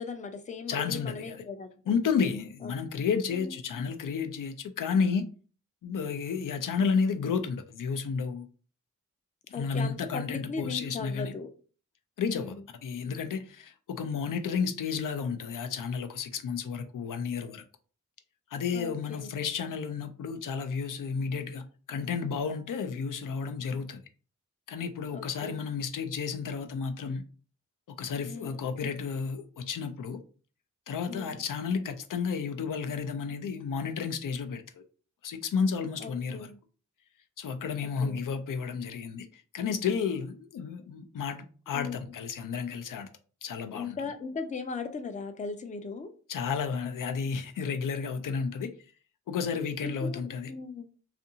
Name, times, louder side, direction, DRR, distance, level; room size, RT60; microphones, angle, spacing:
voice 1, 0.0-1.7 2.6-3.6 9.5-11.5 12.2-12.6 18.7-19.3 25.1-25.5 28.3-28.7 31.1-31.4 36.0-36.6 37.8-38.2 41.7-42.0 43.7-46.1 49.8-50.2 50.5-50.9, left 4 dB, 25° left, 0.4 m, -38 dB
voice 2, 0.7-1.4 1.9-5.3 5.8-8.5 9.5-11.3 12.2-12.5 12.8-17.6 18.5-24.0 24.7-27.2 27.9-30.2 30.9-34.8 35.2-36.5 37.4-43.1 43.4-44.0 46.3-48.7 49.3-50.5, left 6 dB, 85° left, 0.5 m, -32 dB
2.6 x 2.5 x 2.7 m
wide cardioid pair, 110°, 31 cm